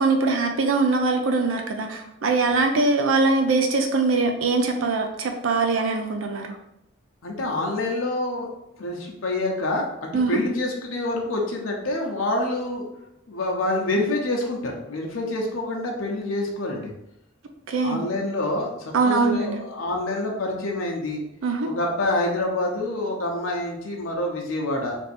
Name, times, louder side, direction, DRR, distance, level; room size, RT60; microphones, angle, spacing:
voice 1, 0.0-6.6 10.1-10.4 17.7-18.3 18.9-19.6 21.4-21.7, right 3 dB, 85° right, 4 dB, 0.5 m, -22 dB
voice 2, 7.2-8.5 8.8-12.8 13.3-16.9 17.8-21.2 21.8-25.0, left 2 dB, 85° left, 0 dB, 0.7 m, -27 dB
3.5 x 2.6 x 4.2 m, 0.83 s
head